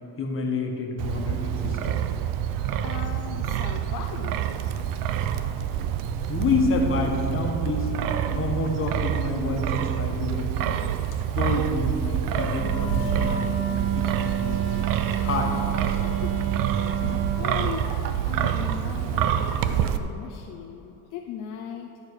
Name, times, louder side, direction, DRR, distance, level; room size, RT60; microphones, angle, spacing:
voice 1, 0.2-2.0 6.3-10.5 11.3-14.6 15.0-15.6, left 3 dB, 35° left, 1 dB, 1.4 m, -28 dB
Wind, 1.0-20.0, right 9 dB, 60° right, 0.6 m, -27 dB
voice 2, 2.8-4.6 16.0-22.0, left 8 dB, 55° left, 3 dB, 0.6 m, -38 dB
Wind instrument woodwind instrument, 12.5-17.4, right 8 dB, 35° right, 1.9 m, -29 dB
12.0 x 6.6 x 4.8 m, 3.0 s
cardioid pair, 145°, 37 cm